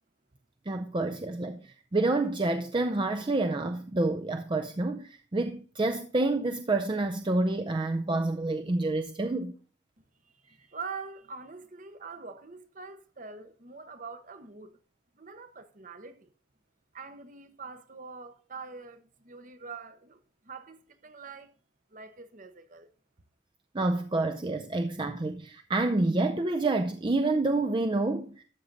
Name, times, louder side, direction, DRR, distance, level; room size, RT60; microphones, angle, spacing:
voice 1, 0.7-9.5 23.7-28.4, right 2 dB, 25° right, 0.5 m, -28 dB
voice 2, 10.2-14.8 15.1-16.3 16.9-21.5 21.9-22.9, right 4 dB, 40° right, 0.9 m, -44 dB
12.5 x 7.1 x 4.0 m
head